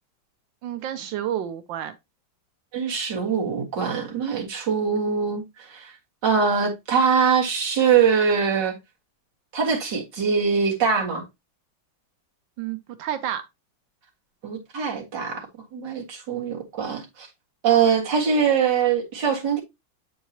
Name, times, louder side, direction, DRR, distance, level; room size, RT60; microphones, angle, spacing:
voice 1, 0.6-1.9 12.6-13.4, right 10 dB, 80° right, 1.4 m, -30 dB
voice 2, 2.7-5.9 6.2-8.8 9.5-11.2 14.4-15.5 15.7-17.3 17.6-19.6, right 6 dB, 65° right, 2.4 m, -23 dB
7.9 x 4.7 x 2.8 m
omnidirectional pair, 2.1 m